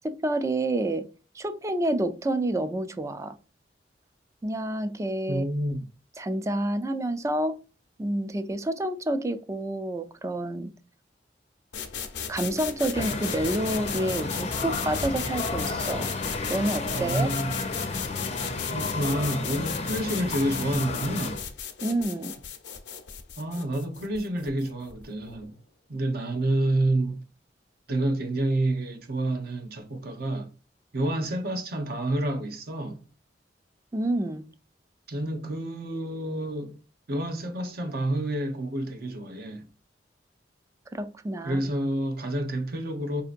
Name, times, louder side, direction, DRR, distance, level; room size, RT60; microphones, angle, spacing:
voice 1, 0.0-1.1 1.3-3.4 4.4-5.4 6.2-7.6 8.0-10.7 12.3-16.1 16.5-17.3 21.8-22.3 33.9-34.5 40.9-41.6, right 1 dB, 15° right, 0.4 m, -28 dB
voice 2, 5.3-5.9 16.9-17.6 18.7-21.4 23.4-25.6 25.9-27.2 27.9-30.5 30.9-33.0 35.1-36.8 37.1-39.7 41.4-43.2, right 1 dB, 60° right, 0.8 m, -29 dB
sound 1, 11.7-25.4, left 7 dB, 80° left, 0.7 m, -36 dB
sound 2, 12.9-21.5, left 3 dB, 40° left, 0.5 m, -32 dB
5.0 x 2.7 x 2.5 m
head